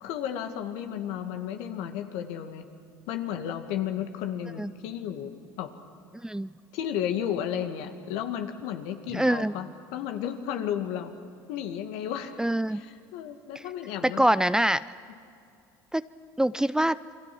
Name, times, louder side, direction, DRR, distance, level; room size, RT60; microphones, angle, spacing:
voice 1, 0.0-2.6 3.1-5.7 6.7-11.1 11.5-12.3 12.7-14.2, left 9 dB, 65° left, 6 dB, 2.1 m, -33 dB
voice 2, 9.1-9.5 12.4-12.8 14.0-14.9 15.9-16.1 16.4-17.0, right 1 dB, 5° right, 15 dB, 0.6 m, -24 dB
28.0 x 23.5 x 6.1 m, 2.5 s
hypercardioid pair, 70°, 11 cm